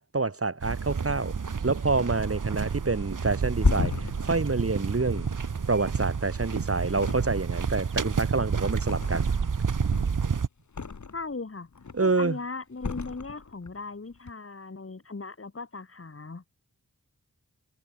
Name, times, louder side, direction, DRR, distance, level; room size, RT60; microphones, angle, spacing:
voice 1, 0.0-1.4 1.6-5.3 5.7-9.3 11.9-12.4, right 3 dB, 45° right, 4.6 m, -27 dB
sound 1, 0.6-10.5, right 5 dB, 70° right, 2.0 m, -30 dB
Thump thud, 3.2-6.5 6.9-7.7 8.0-9.5 9.8-11.3 11.7-12.2 12.8-13.8 14.1-14.3, left 4 dB, 60° left, 2.8 m, -33 dB
voice 2, 11.1-11.7 12.0-16.5, left 3 dB, 45° left, 3.6 m, -38 dB
wide cardioid pair, 90°, 32 cm